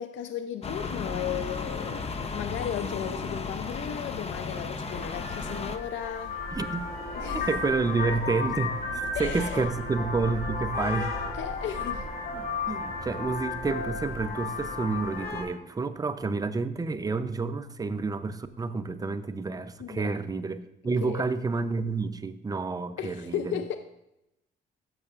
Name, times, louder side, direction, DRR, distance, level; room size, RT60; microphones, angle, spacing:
voice 1, 0.0-6.4 7.1-7.5 9.1-9.7 11.3-12.1 19.8-20.2 21.0-21.2 23.0-23.8, left 9 dB, 70° left, 9 dB, 0.5 m, -35 dB
sound 1, 0.6-5.8, left 4 dB, 30° left, 0.7 m, -34 dB
Vehicle horn car horn honking, 4.7-15.4, left 3 dB, 50° left, 2.2 m, -34 dB
voice 2, 6.5-6.9 7.5-8.8 9.2-11.1 12.3-23.6, right 4 dB, 20° right, 10 dB, 0.5 m, -29 dB
14.0 x 6.5 x 2.4 m, 0.87 s
cardioid pair, 90°, 20 cm